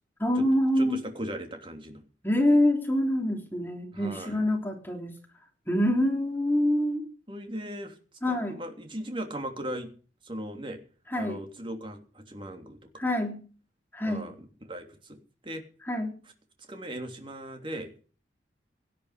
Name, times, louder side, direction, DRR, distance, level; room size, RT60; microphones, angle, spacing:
voice 1, 0.2-1.0 2.2-5.1 5.7-7.1 8.2-8.6 11.1-11.4 13.0-13.4 13.9-14.3 15.9-16.2, left 1 dB, 10° left, 2 dB, 3.6 m, -25 dB
voice 2, 0.8-2.0 3.9-4.4 7.3-7.9 8.3-9.9 10.2-10.8 11.2-13.0 14.0-15.2 15.4-15.6 16.7-17.9, right 1 dB, 25° right, 5 dB, 3.1 m, -38 dB
17.5 x 11.5 x 5.1 m, 0.38 s
head